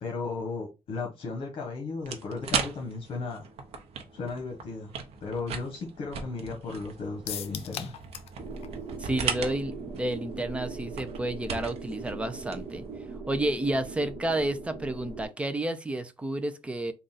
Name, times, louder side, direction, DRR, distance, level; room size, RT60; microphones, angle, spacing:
voice 1, 0.0-3.5 4.1-4.9 5.2-7.9, left 3 dB, 55° left, 1.0 m, -35 dB
sound 1, 2.0-13.2, right 6 dB, 75° right, 0.8 m, -38 dB
sound 2, 7.3-8.4 8.6-8.7 9.1-9.2, left 9 dB, 75° left, 0.5 m, -37 dB
sound 3, 8.4-15.2, right 3 dB, 55° right, 1.0 m, -40 dB
voice 2, 9.0-12.9 13.3-16.9, right 1 dB, 10° right, 0.4 m, -31 dB
3.7 x 2.4 x 3.9 m
cardioid pair, 160°, 11 cm